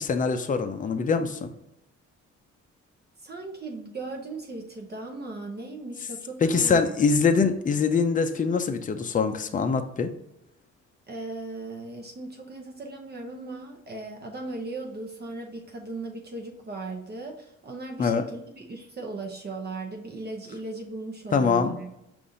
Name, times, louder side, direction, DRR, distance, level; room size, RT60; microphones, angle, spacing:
voice 1, 0.0-1.5 6.4-10.1 18.0-18.2 21.3-21.8, left 5 dB, 25° left, 7 dB, 0.5 m, -23 dB
voice 2, 3.2-6.9 11.1-21.9, right 3 dB, 35° right, 1 dB, 0.8 m, -37 dB
5.4 x 2.6 x 3.8 m, 0.83 s
cardioid pair, 90°, 30 cm